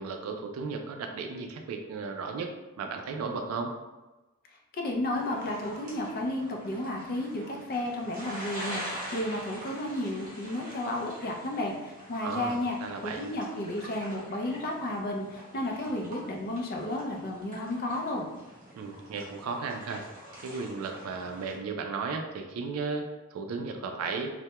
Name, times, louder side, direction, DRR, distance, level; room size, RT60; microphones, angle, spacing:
voice 1, 0.0-2.5 2.8-3.7 12.2-13.3 18.7-20.0 20.4-24.3, right 4 dB, 80° right, 4 dB, 0.3 m, -35 dB
voice 2, 4.7-12.8 13.0-18.3, left 1 dB, 45° left, 1 dB, 0.4 m, -32 dB
sound 1, 5.1-21.6, equal, 40° right, 0.8 m, -44 dB
2.2 x 2.1 x 2.8 m, 1.1 s
head